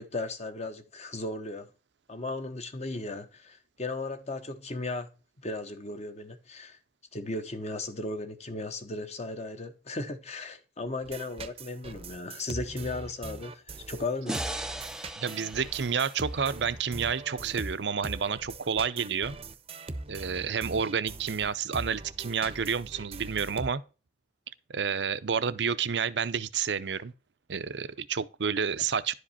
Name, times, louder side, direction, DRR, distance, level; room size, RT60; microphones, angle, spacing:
voice 1, 0.0-1.7 2.1-5.1 5.4-6.8 7.1-14.4, left 2 dB, 40° left, 1.1 m, -36 dB
sound 1, 11.0-23.7, right 2 dB, 35° right, 0.7 m, -41 dB
sound 2, 14.3-17.5, right 1 dB, 5° right, 0.5 m, -39 dB
voice 2, 15.2-19.4 20.1-23.8 24.7-27.1 27.5-29.1, right 6 dB, 70° right, 0.6 m, -30 dB
11.0 x 5.1 x 4.3 m
head